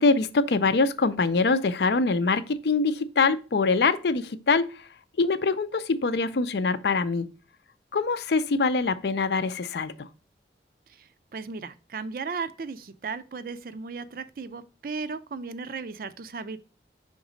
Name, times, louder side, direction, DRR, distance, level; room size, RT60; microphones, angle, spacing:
voice 1, 0.0-4.9 5.2-7.3 7.9-10.1, left 4 dB, 70° left, 0.5 m, -24 dB
voice 2, 11.0-16.6, right 4 dB, 55° right, 0.4 m, -36 dB
5.2 x 3.9 x 5.0 m
head